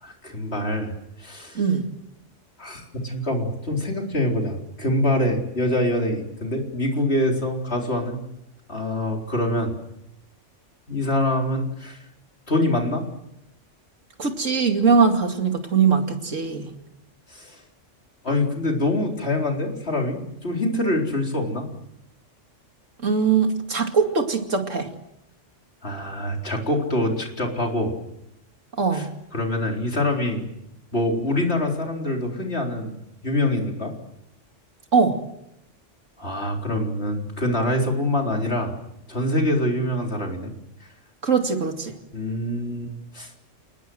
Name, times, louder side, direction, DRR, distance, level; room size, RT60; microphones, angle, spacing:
voice 1, 0.0-0.9 1.2-1.6 2.6-8.2 8.7-9.7 10.9-12.0 12.5-13.0 17.3-17.6 18.2-21.7 25.8-27.9 28.9-29.1 29.3-30.4 30.9-32.9 33.2-33.9 36.2-38.7 39.1-40.5 42.1-43.4, left 1 dB, 55° left, 1 dB, 4.3 m, -25 dB
voice 2, 1.5-1.9 14.2-16.7 23.0-24.9 28.8-29.1 34.9-35.2 41.2-41.9, right 5 dB, 90° right, 5 dB, 2.8 m, -21 dB
29.5 x 19.5 x 7.8 m, 0.83 s
omnidirectional pair, 1.3 m